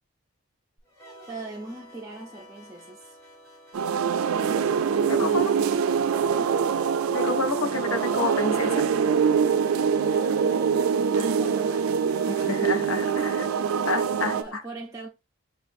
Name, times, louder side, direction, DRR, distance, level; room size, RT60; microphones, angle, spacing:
sound 1, 0.8-14.5, left 2 dB, 10° left, 2.3 m, -50 dB
voice 1, 1.3-3.2 5.0-6.0 6.3-6.6 10.0-12.7 14.3-15.1, right 2 dB, 15° right, 0.4 m, -41 dB
sound 2, 3.7-14.4, right 7 dB, 85° right, 0.4 m, -24 dB
voice 2, 5.0-5.5 7.1-8.8 12.3-13.5 13.8-14.6, left 3 dB, 85° left, 0.8 m, -29 dB
6.9 x 2.4 x 2.6 m
head